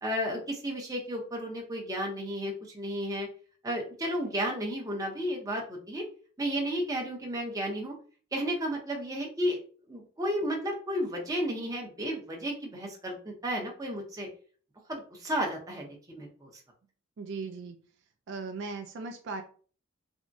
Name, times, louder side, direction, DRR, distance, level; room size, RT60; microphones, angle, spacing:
voice 1, 0.0-3.3 3.6-6.0 6.4-7.9 8.3-9.6 9.9-14.3 14.9-16.5, equal, 15° right, -1 dB, 0.6 m, -33 dB
voice 2, 17.2-17.8 18.3-19.4, right 4 dB, 55° right, 5 dB, 0.3 m, -37 dB
3.4 x 2.0 x 2.5 m, 0.41 s
head